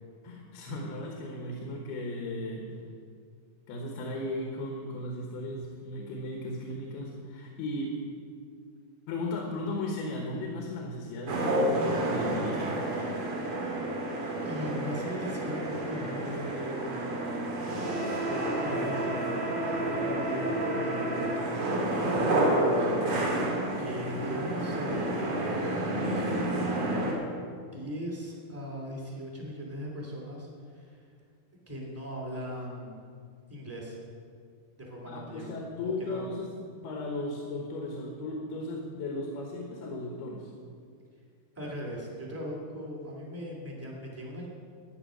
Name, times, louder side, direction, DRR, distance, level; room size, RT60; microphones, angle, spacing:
voice 1, 0.2-2.7 3.7-8.0 9.1-12.8 35.1-40.5, left 2 dB, 85° left, 1 dB, 3.4 m, -36 dB
sound 1, 11.3-27.1, right 1 dB, 50° right, 3.4 m, -30 dB
voice 2, 14.4-17.2 18.2-19.2 19.6-23.5 23.8-31.0 31.7-33.0 33.5-34.0 34.8-35.5 35.8-36.2 41.5-44.5, equal, 5° right, -3 dB, 1.7 m, -39 dB
14.0 x 9.5 x 6.3 m, 2.1 s
omnidirectional pair, 4.4 m